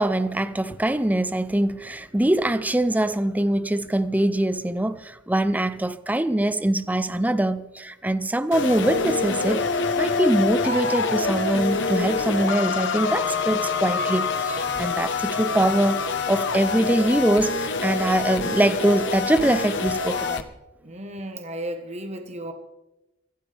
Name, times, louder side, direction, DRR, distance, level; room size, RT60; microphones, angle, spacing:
voice 1, 0.0-9.6 10.0-16.0 16.3-20.4, right 1 dB, 10° right, 0.6 m, -23 dB
sound 1, 8.5-20.4, left 4 dB, 65° left, 1.2 m, -26 dB
voice 2, 20.8-22.5, right 1 dB, 35° right, 1.3 m, -34 dB
23.0 x 15.0 x 3.5 m
head